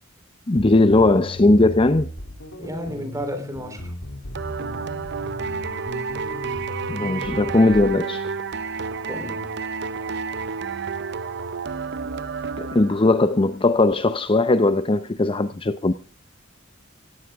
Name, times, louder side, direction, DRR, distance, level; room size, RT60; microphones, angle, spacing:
voice 1, 0.5-2.1 6.9-8.3 12.6-15.9, left 2 dB, 25° left, 0.6 m, -18 dB
sound 1, 0.6-7.9, left 1 dB, 90° left, 2.9 m, -36 dB
voice 2, 2.6-3.9 9.1-9.5, equal, 15° right, 3.7 m, -32 dB
sound 2, 4.3-13.3, right 5 dB, 60° right, 0.7 m, -30 dB
17.5 x 16.0 x 3.6 m
head